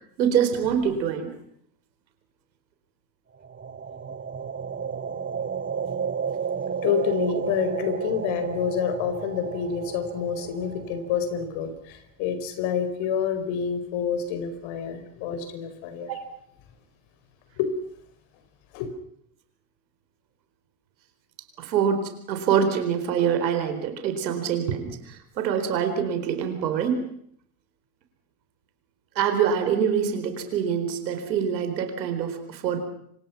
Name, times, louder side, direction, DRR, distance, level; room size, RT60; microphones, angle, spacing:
voice 1, 0.2-1.3 16.1-16.3 21.6-27.1 29.1-32.8, right 7 dB, 85° right, 7 dB, 4.4 m, -25 dB
sound 1, 3.4-11.5, right 6 dB, 25° right, 1.6 m, -32 dB
voice 2, 6.8-16.1 17.6-17.7 18.7-18.9, left 7 dB, 65° left, 9 dB, 5.0 m, -28 dB
28.0 x 25.5 x 6.0 m, 0.69 s
hypercardioid pair, 70°, 50 cm